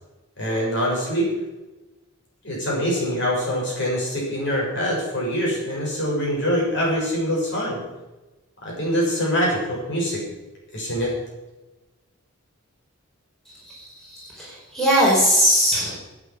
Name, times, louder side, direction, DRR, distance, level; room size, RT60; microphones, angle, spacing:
voice 1, 0.4-1.3 2.4-7.8 8.6-10.2 10.7-11.1, equal, 50° left, -3 dB, 6.6 m, -24 dB
voice 2, 13.6-16.0, equal, ahead, -6 dB, 4.9 m, -20 dB
12.5 x 9.0 x 8.8 m, 1.1 s
head